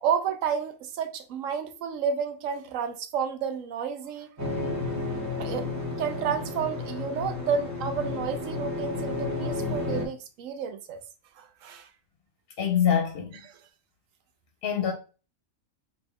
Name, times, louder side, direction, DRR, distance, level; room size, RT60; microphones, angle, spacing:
voice 1, 0.0-4.3 5.4-5.7 6.0-11.0 11.4-11.9 13.4-13.6, right 7 dB, 80° right, 1.0 m, -31 dB
sound 1, 4.4-10.1, left 2 dB, 15° right, 0.6 m, -32 dB
voice 2, 12.6-13.3 14.6-14.9, left 8 dB, 55° left, 0.8 m, -24 dB
3.4 x 2.5 x 3.4 m
omnidirectional pair, 1.4 m